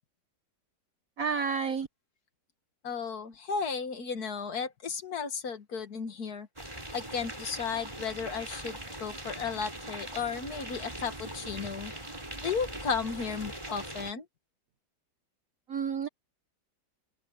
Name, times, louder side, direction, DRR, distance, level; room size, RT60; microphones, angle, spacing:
voice 1, 1.2-1.9 15.7-16.1, right 6 dB, 55° right, 1.3 m, -30 dB
voice 2, 2.8-6.5 6.9-11.9 12.4-14.2, left 5 dB, 60° left, 2.1 m, -34 dB
sound 1, 6.6-14.1, right 1 dB, 15° right, 4.7 m, -41 dB
open air
omnidirectional pair, 1.9 m